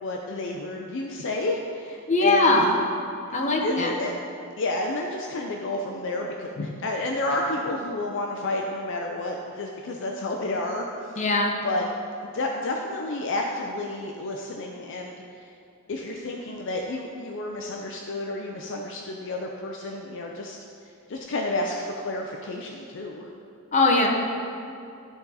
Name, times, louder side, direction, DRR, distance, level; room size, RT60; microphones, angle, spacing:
voice 1, 0.0-2.6 3.6-4.1 4.6-11.3 11.6-11.8 12.3-15.5 15.9-20.6 21.1-23.3, left 2 dB, 55° left, 1 dB, 0.5 m, -30 dB
voice 2, 2.1-2.7 3.3-3.9 11.2-11.5 23.7-24.1, left 2 dB, 35° left, 0 dB, 0.9 m, -20 dB
12.0 x 4.0 x 4.0 m, 2.6 s
head